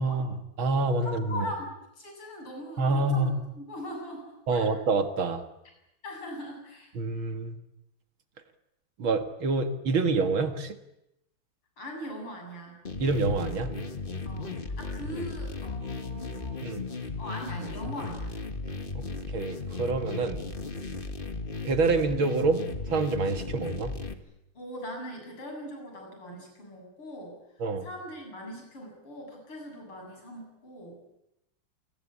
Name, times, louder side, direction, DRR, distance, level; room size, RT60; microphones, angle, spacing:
voice 1, 0.0-1.5 2.8-3.3 4.5-5.4 6.9-7.6 9.0-10.8 13.0-13.7 16.6-16.8 18.9-19.0 19.3-20.4 21.6-22.6 22.9-23.9 27.6-27.9, right 3 dB, 70° right, 7 dB, 2.7 m, -27 dB
voice 2, 1.0-4.7 6.0-7.3 11.8-12.8 14.2-16.6 17.2-18.4 24.5-27.4 27.8-31.0, equal, 90° left, 2 dB, 8.8 m, -41 dB
sound 1, 12.8-24.1, left 3 dB, 25° left, 1.7 m, -36 dB
27.5 x 21.0 x 8.5 m, 0.86 s
omnidirectional pair, 2.3 m